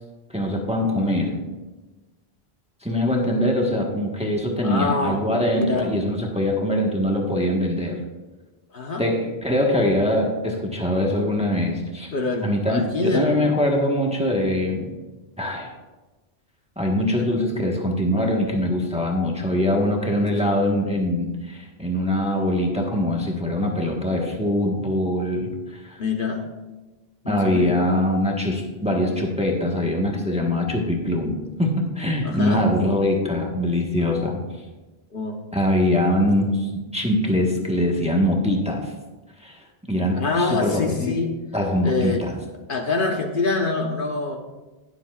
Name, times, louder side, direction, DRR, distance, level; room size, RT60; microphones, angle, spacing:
voice 1, 0.3-1.4 2.8-8.0 9.0-12.1 12.4-14.9 15.4-15.7 16.8-26.0 27.3-34.4 35.5-38.9 39.4-41.1 41.5-42.3, left 1 dB, 5° right, 0 dB, 1.3 m, -23 dB
voice 2, 4.6-5.2 5.5-5.9 8.7-9.0 12.1-13.3 17.2-17.3 26.0-26.4 27.2-27.8 32.2-32.6 35.1-35.4 40.1-41.3 41.8-42.2 42.7-44.4, left 3 dB, 55° left, 2 dB, 1.2 m, -25 dB
20.0 x 7.3 x 2.4 m, 1.2 s
omnidirectional pair, 1.1 m